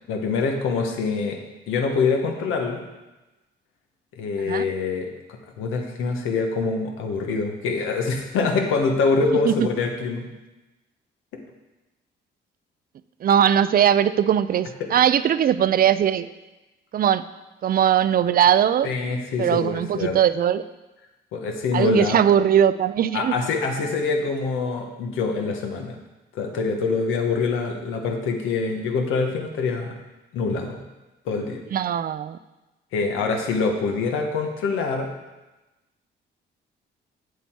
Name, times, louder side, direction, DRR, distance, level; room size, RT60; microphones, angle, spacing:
voice 1, 0.1-1.4 1.7-2.8 4.1-10.3 18.8-20.2 21.3-22.2 23.1-26.0 26.3-30.0 30.3-30.8 31.2-31.6 32.9-35.1, left 4 dB, 90° left, 3 dB, 1.4 m, -25 dB
voice 2, 13.2-16.3 16.9-17.2 17.6-18.9 19.4-20.6 21.7-23.3 31.7-32.4, right 9 dB, 50° right, 15 dB, 0.5 m, -20 dB
8.5 x 8.1 x 4.6 m, 1.1 s
cardioid pair, 90°, 20 cm